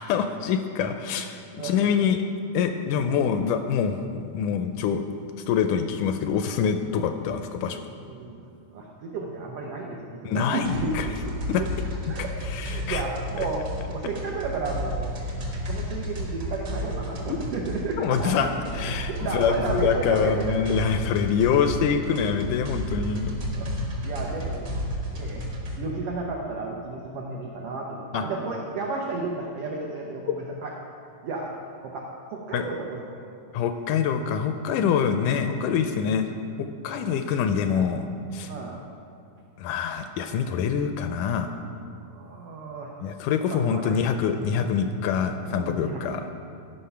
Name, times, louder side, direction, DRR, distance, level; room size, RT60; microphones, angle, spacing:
voice 1, 0.0-2.2 2.5-5.0 5.5-7.8 10.3-11.1 11.5-11.6 12.5-13.0 13.4-13.5 17.3-17.4 18.0-18.5 18.7-23.3 28.1-28.2 32.5-32.7 33.5-36.3 36.6-38.1 38.3-38.5 39.6-41.5 43.0-46.2, left 7 dB, 80° left, 7 dB, 1.9 m, -25 dB
voice 2, 8.1-8.4 8.7-11.1 12.1-12.3 12.7-13.6 13.9-15.1 15.7-18.5 19.1-20.6 23.5-23.7 24.0-24.7 25.1-25.4 25.7-30.7 31.2-31.5 31.8-33.2 37.1-37.3 38.5-38.8 42.0-42.9 43.5-44.1 44.5-44.7 45.5-46.3, right 3 dB, 85° right, -1 dB, 1.3 m, -33 dB
sound 1, 10.6-25.8, equal, 50° right, 1.1 m, -32 dB
12.0 x 5.4 x 5.7 m, 2.5 s
omnidirectional pair, 3.8 m